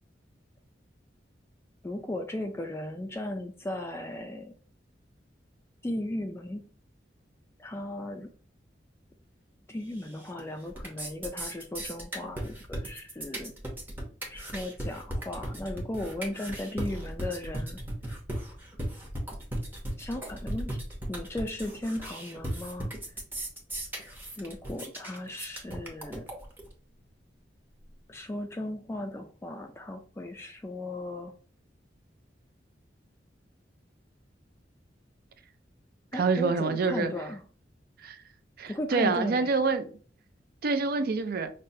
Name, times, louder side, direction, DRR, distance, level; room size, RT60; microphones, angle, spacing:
voice 1, 1.8-4.5 5.8-6.7 7.6-8.3 9.7-13.5 14.3-17.8 20.0-20.8 21.1-22.9 24.4-26.3 28.1-31.3 36.1-37.4 38.7-39.5, left 1 dB, 15° left, 0.3 m, -36 dB
sound 1, 10.0-10.4 10.7-26.7, right 1 dB, 10° right, 0.8 m, -37 dB
voice 2, 36.1-37.1 38.0-38.2 38.6-39.9 40.6-41.5, right 4 dB, 55° right, 0.4 m, -26 dB
5.4 x 2.1 x 2.6 m
head